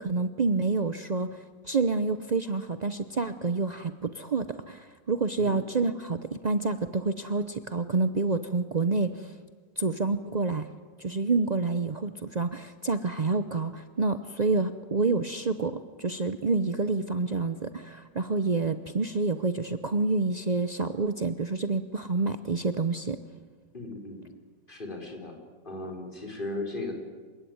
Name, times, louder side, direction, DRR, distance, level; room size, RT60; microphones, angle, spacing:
voice 1, 0.0-9.3 9.8-10.7 11.0-23.2, right 3 dB, 70° right, 11 dB, 0.4 m, -28 dB
voice 2, 23.7-24.2 24.7-25.4 25.6-26.9, left 2 dB, 25° left, 2 dB, 4.6 m, -36 dB
28.0 x 17.0 x 9.4 m, 1.5 s
omnidirectional pair, 2.0 m